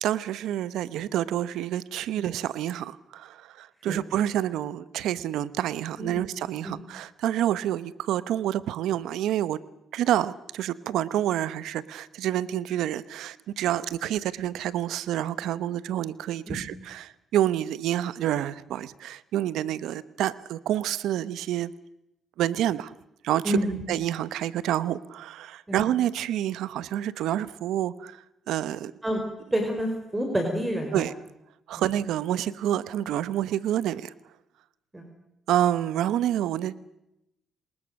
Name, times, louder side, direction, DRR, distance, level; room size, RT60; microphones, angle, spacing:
voice 1, 0.0-9.6 9.9-21.7 22.4-22.9 23.2-23.6 23.9-28.2 28.5-28.9 30.9-31.1 31.7-34.1 35.5-36.9, right 12 dB, 85° right, 16 dB, 1.0 m, -28 dB
voice 2, 6.0-6.3 6.6-6.8 16.5-16.7 23.4-23.8 25.7-25.8 29.0-29.2 29.5-31.0 31.7-31.8 34.9-35.1, equal, 15° right, 3 dB, 4.5 m, -28 dB
28.5 x 19.5 x 6.5 m, 0.86 s
cardioid pair, 90°, 0 cm